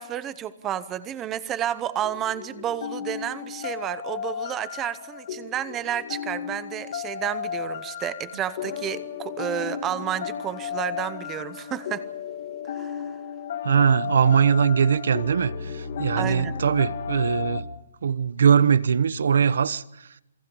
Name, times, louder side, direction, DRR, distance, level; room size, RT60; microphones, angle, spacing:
voice 1, 0.0-12.1 12.7-13.0 16.2-16.5, right 10 dB, 10° right, 0.8 m, -31 dB
sound 1, 2.0-17.6, left 7 dB, 40° left, 2.4 m, -34 dB
voice 2, 13.6-17.6 18.0-19.8, right 7 dB, 65° right, 1.1 m, -21 dB
28.0 x 23.0 x 5.4 m
hypercardioid pair, 180°, 0 cm